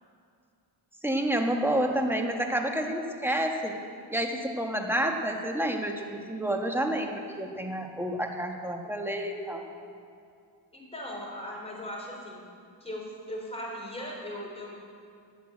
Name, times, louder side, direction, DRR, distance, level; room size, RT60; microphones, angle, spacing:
voice 1, 1.0-3.8 4.1-9.6, right 1 dB, 5° right, 2 dB, 1.5 m, -29 dB
voice 2, 10.7-12.4 12.8-14.8, equal, 15° left, -2 dB, 4.1 m, -38 dB
11.5 x 8.5 x 8.8 m, 2.3 s
cardioid pair, 65°, 44 cm